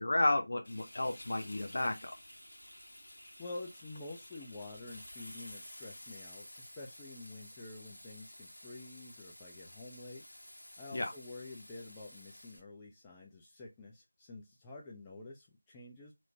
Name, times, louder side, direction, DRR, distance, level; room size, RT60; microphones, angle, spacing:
voice 1, 0.0-2.1 10.9-11.1, left 2 dB, 50° left, 0.6 m, -32 dB
Frying (food), 0.6-12.6, left 1 dB, 65° left, 1.2 m, -52 dB
voice 2, 3.4-10.2 10.8-16.1, left 2 dB, 10° left, 0.3 m, -48 dB
2.9 x 2.1 x 2.5 m
figure-of-eight pair, 165°, 0 cm